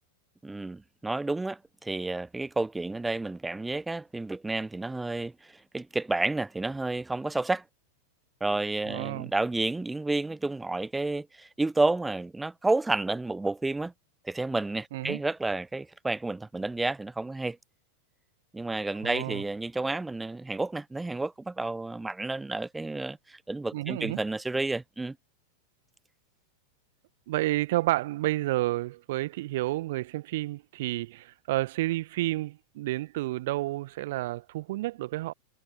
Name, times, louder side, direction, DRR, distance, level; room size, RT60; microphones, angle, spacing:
voice 1, 0.4-7.6 8.4-13.9 14.2-17.6 18.5-25.2, right 2 dB, 10° right, 1.0 m, -30 dB
voice 2, 8.9-9.3 14.9-15.2 19.0-19.4 23.7-24.2 27.3-35.3, right 17 dB, 55° right, 1.4 m, -30 dB
figure-of-eight pair, 90°, 0 cm